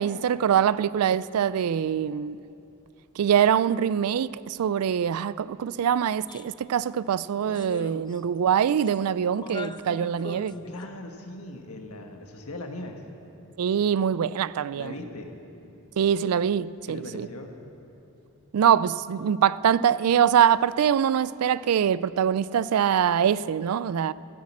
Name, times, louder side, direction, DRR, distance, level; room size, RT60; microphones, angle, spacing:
voice 1, 0.0-2.4 3.2-10.5 13.6-14.9 16.0-17.3 18.5-24.1, right 8 dB, 75° right, 0.3 m, -23 dB
sound 1, 6.3-6.5 6.8-6.9 7.5-8.4 8.7-9.0 9.3-10.9, left 2 dB, 20° left, 0.4 m, -40 dB
voice 2, 10.7-13.0 14.7-15.3 16.9-17.5, left 1 dB, 80° left, 1.5 m, -39 dB
15.0 x 10.5 x 7.3 m
head